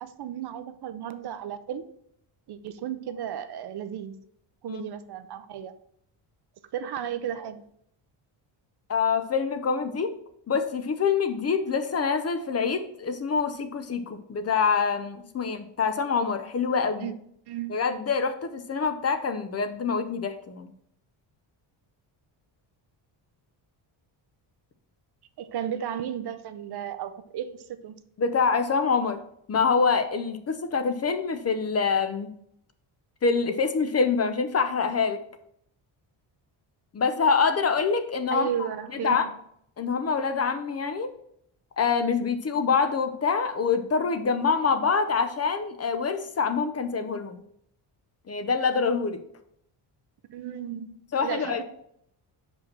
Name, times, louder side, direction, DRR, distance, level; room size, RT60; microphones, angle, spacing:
voice 1, 0.0-1.9 2.5-4.2 4.6-5.7 6.7-7.6 17.0-17.1 17.5-17.8 25.4-28.0 38.3-39.3 50.3-51.6, right 9 dB, 55° right, 0.7 m, -34 dB
voice 2, 8.9-10.1 10.5-17.1 17.7-20.7 28.2-29.2 29.5-32.3 33.2-35.2 36.9-38.5 39.0-39.3 39.8-41.1 41.8-47.4 48.3-49.2 51.1-51.6, left 5 dB, 30° left, 0.7 m, -25 dB
6.0 x 5.3 x 5.8 m
cardioid pair, 150°, 47 cm